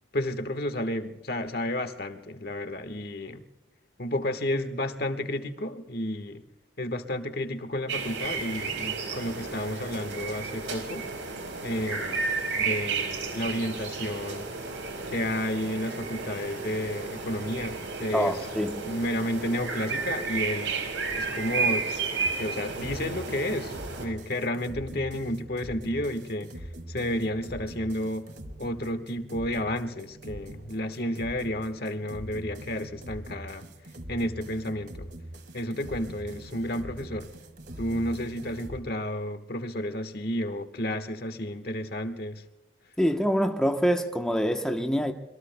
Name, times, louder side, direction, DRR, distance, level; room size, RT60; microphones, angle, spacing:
voice 1, 0.1-3.4 4.0-6.4 6.8-11.1 11.6-12.3 12.5-14.5 15.1-18.4 18.8-20.7 21.2-21.9 22.4-28.3 28.6-33.6 34.1-35.1 35.5-37.3 37.8-42.4, left 1 dB, 55° left, 1.4 m, -31 dB
sound 1, 7.9-24.1, right 4 dB, 85° right, 4.5 m, -32 dB
voice 2, 18.1-18.8 43.0-45.1, equal, 5° left, 0.9 m, -25 dB
sound 2, 22.2-38.8, right 1 dB, 60° right, 1.8 m, -43 dB
26.5 x 22.5 x 2.2 m
head